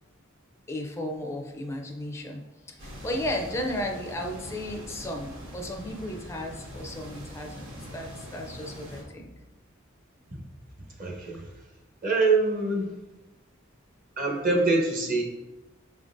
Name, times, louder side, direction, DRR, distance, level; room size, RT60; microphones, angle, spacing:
voice 1, 0.7-2.4 2.7-9.3 12.8-13.0, left 1 dB, 15° left, 2 dB, 0.4 m, -34 dB
sound 1, 2.8-9.0, equal, 70° right, 1.5 m, -42 dB
voice 2, 11.0-11.5 12.0-12.9 14.2-15.2, right 3 dB, 45° right, -1 dB, 0.8 m, -24 dB
5.5 x 3.6 x 2.5 m, 1.1 s
head